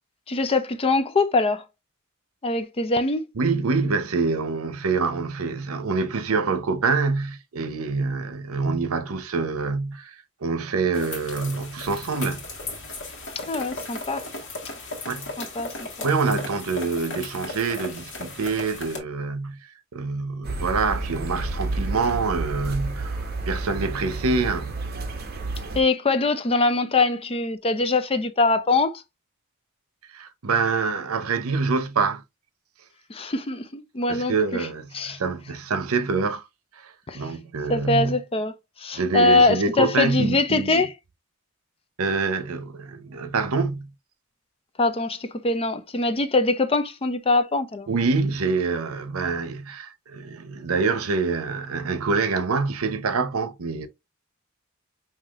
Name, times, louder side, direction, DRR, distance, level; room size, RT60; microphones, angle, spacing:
voice 1, 0.3-1.6 2.4-3.2 13.4-14.2 15.4-15.7 16.0-16.1 25.7-29.0 33.1-34.7 34.9-35.2 37.1-37.2 37.7-38.5 38.8-40.9 44.8-47.9, left 3 dB, 25° left, 0.5 m, -23 dB
voice 2, 3.4-10.2 10.4-12.4 15.1-15.3 16.0-19.6 19.9-24.7 30.1-32.2 34.1-36.4 36.8-38.2 38.9-40.8 42.0-43.9 47.9-53.9, right 4 dB, 85° right, 0.7 m, -26 dB
sound 1, 10.9-19.0, left 3 dB, 60° left, 1.4 m, -36 dB
sound 2, 20.4-25.8, right 2 dB, 50° right, 1.0 m, -30 dB
5.6 x 2.8 x 2.4 m
head